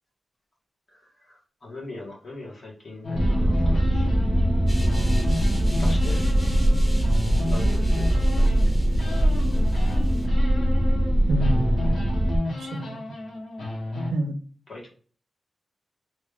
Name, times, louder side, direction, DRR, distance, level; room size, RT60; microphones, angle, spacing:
voice 1, 1.6-4.1 5.8-6.3 7.5-8.6 14.7-14.8, left 2 dB, 50° left, -3 dB, 1.5 m, -40 dB
sound 1, 3.0-8.7 9.0-11.1 11.4-14.1, left 2 dB, 80° left, 1.4 m, -33 dB
sound 2, 3.1-12.4, right 1 dB, 15° right, 0.5 m, -21 dB
sound 3, 4.7-10.3, equal, 15° left, 1.0 m, -43 dB
voice 2, 11.3-13.2 14.1-14.4, right 1 dB, 85° right, 7 dB, 0.5 m, -30 dB
3.2 x 2.5 x 3.2 m, 0.43 s
wide cardioid pair, 130°, 0 cm